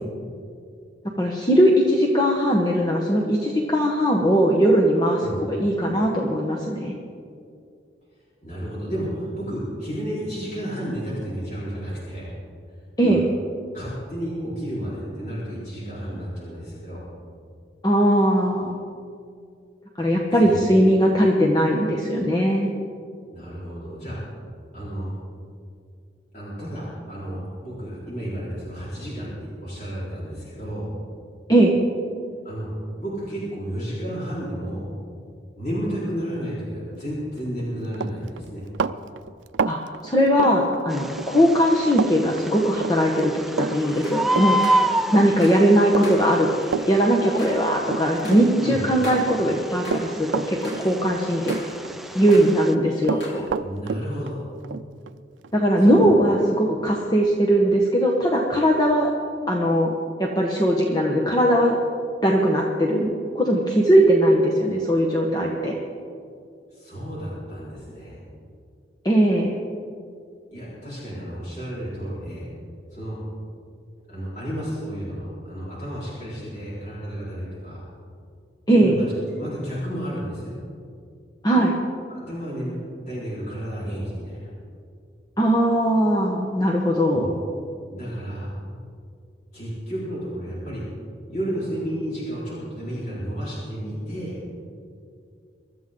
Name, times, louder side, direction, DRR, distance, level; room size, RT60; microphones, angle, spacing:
voice 1, 1.2-5.2 5.5-6.9 13.0-13.2 17.8-18.7 20.0-22.7 31.5-31.8 39.7-44.6 45.1-46.5 46.9-51.5 52.1-53.5 55.5-59.1 59.5-59.9 60.2-61.8 62.2-63.1 63.3-65.8 69.0-69.5 78.7-79.0 81.4-81.8 85.4-87.3, equal, 20° left, -1 dB, 1.2 m, -19 dB
voice 2, 8.4-12.3 13.0-13.2 13.7-17.0 20.4-20.6 23.3-24.2 24.7-25.1 26.3-30.9 32.4-32.7 33.0-34.8 35.6-38.6 48.6-48.8 53.6-54.4 55.8-56.1 66.7-68.2 70.5-72.5 72.9-73.2 74.1-77.8 78.7-79.1 79.4-80.6 82.1-82.8 83.1-84.5 87.1-87.3 87.9-88.6 89.5-90.9 91.3-94.4, equal, 40° left, -9 dB, 4.5 m, -32 dB
Run, 37.5-37.7 37.9-41.3 41.6-42.1 42.4-48.7 49.1-51.2 51.5-52.4 52.6-56.0, right 5 dB, 90° right, 0.5 m, -29 dB
Bird, 40.9-52.7, right 1 dB, ahead, 0.5 m, -30 dB
sound 1, 43.7-45.8 46.0-50.1 50.4-52.6 52.9-53.5, left 1 dB, 65° left, 3.7 m, -42 dB
23.5 x 13.5 x 3.8 m, 2.3 s
head